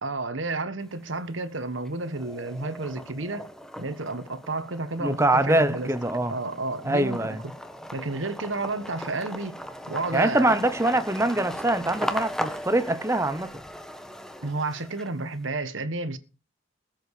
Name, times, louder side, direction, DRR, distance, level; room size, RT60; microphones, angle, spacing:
voice 1, 0.0-3.4 3.8-5.9 6.3-7.6 7.9-9.6 9.9-10.6 14.4-16.2, right 2 dB, 75° right, 1.5 m, -31 dB
sound 1, 0.8-1.5 1.9-15.4, equal, 5° left, 1.2 m, -38 dB
voice 2, 5.0-6.3 6.8-7.4 10.1-13.5, right 1 dB, 15° right, 0.8 m, -24 dB
20.0 x 7.9 x 5.0 m
head